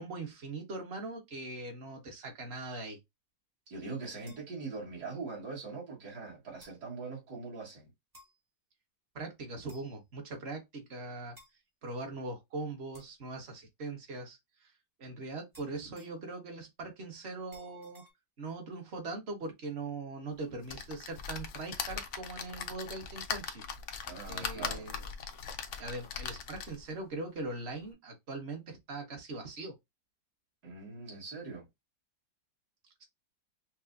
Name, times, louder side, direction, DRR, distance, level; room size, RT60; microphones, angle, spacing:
voice 1, 0.0-3.0 9.1-11.4 11.8-14.7 15.0-18.0 18.4-23.6 24.3-25.1 25.8-29.8, right 3 dB, 40° right, 1.1 m, -41 dB
voice 2, 3.7-7.9 24.1-24.9 30.6-31.7, right 4 dB, 60° right, 2.1 m, -42 dB
sound 1, 4.2-4.5 5.6-5.7 6.6-6.8 8.1-8.4 9.7-10.0 11.3-11.5 12.9-13.2 15.5-16.3 17.5-18.1, right 1 dB, 15° right, 0.8 m, -58 dB
sound 2, 20.7-26.9 27.4-27.5 27.8-27.9, left 7 dB, 90° left, 0.6 m, -40 dB
5.7 x 2.1 x 2.5 m
omnidirectional pair, 2.0 m